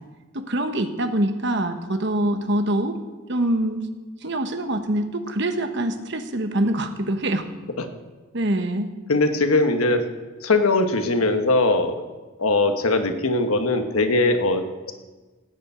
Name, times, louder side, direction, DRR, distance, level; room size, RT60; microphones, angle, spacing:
voice 1, 0.3-3.0 3.3-3.9 4.2-7.5 8.3-8.9, right 1 dB, 55° right, 8 dB, 1.1 m, -24 dB
voice 2, 9.1-10.0 10.4-11.9 12.4-14.9, left 2 dB, 85° left, 7 dB, 1.3 m, -20 dB
16.5 x 7.0 x 8.3 m, 1.3 s
head